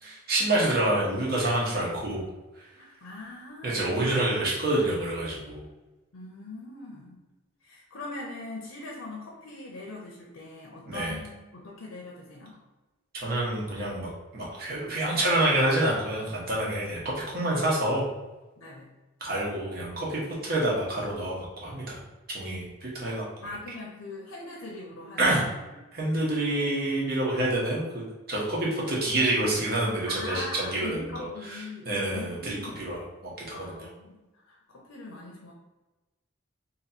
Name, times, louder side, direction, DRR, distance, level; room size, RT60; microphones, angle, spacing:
voice 1, 0.0-2.3 2.6-2.7 3.6-5.6 10.8-11.2 13.2-18.1 19.2-22.0 22.3-23.5 25.2-25.5 25.9-33.9, right 1 dB, 45° right, -5 dB, 1.1 m, -28 dB
voice 2, 2.7-4.1 6.1-7.2 7.6-12.5 18.6-18.9 23.4-25.5 30.1-32.9 33.5-34.2 34.5-35.5, left 2 dB, 85° left, -2 dB, 0.8 m, -41 dB
3.0 x 2.8 x 4.1 m, 1.1 s
head